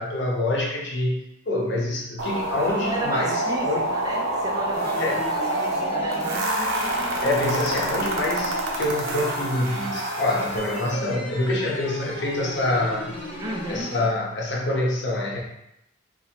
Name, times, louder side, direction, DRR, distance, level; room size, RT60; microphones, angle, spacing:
voice 1, 0.0-3.9 5.0-5.2 6.6-6.7 7.2-13.1 13.7-15.4, left 2 dB, 60° left, -2 dB, 0.7 m, -26 dB
sound 1, 2.2-10.9, right 1 dB, 80° right, 0.7 m, -27 dB
voice 2, 2.7-6.5 13.4-13.9, right 1 dB, 20° right, 0 dB, 0.3 m, -33 dB
sound 2, 4.7-14.1, equal, 30° left, 0.9 m, -36 dB
2.8 x 2.5 x 4.2 m, 0.83 s
head